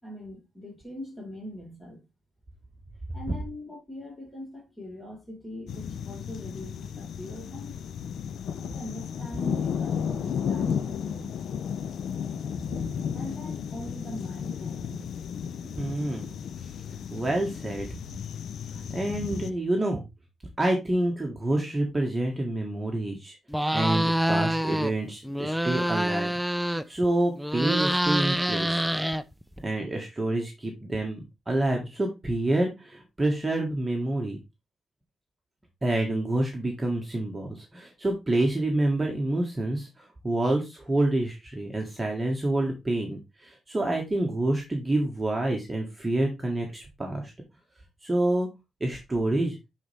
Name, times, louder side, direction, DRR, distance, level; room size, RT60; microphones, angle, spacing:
voice 1, 0.0-2.0 3.1-7.8 8.6-11.5 13.1-15.1, left 1 dB, 15° left, 4.3 m, -41 dB
sound 1, 5.7-19.5, left 7 dB, 75° left, 0.5 m, -33 dB
voice 2, 15.8-16.3 16.6-16.7 17.1-17.9 18.9-20.0 20.6-23.3 23.7-26.3 26.9-28.9 29.6-31.2 31.5-34.4 35.8-47.3 48.0-48.5 48.8-49.6, right 1 dB, 20° right, 1.5 m, -27 dB
sound 2, 23.5-24.9 25.2-27.0 27.4-29.6, equal, ahead, 0.5 m, -26 dB
9.8 x 4.2 x 3.3 m
cardioid pair, 95°, 0 cm